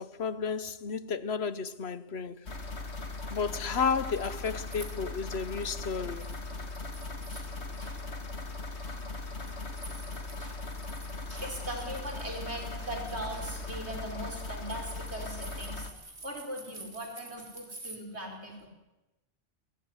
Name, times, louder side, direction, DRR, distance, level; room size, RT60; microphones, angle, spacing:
voice 1, 0.0-2.5 3.3-6.3, left 5 dB, 75° left, 1.3 m, -32 dB
sound 1, 2.5-15.9, left 3 dB, 90° left, 2.3 m, -39 dB
sound 2, 3.9-5.8 6.1-8.0 8.4-18.0, right 2 dB, 55° right, 3.3 m, -50 dB
voice 2, 10.4-18.7, right 1 dB, 90° right, 5.5 m, -40 dB
21.0 x 18.0 x 9.8 m
omnidirectional pair, 1.1 m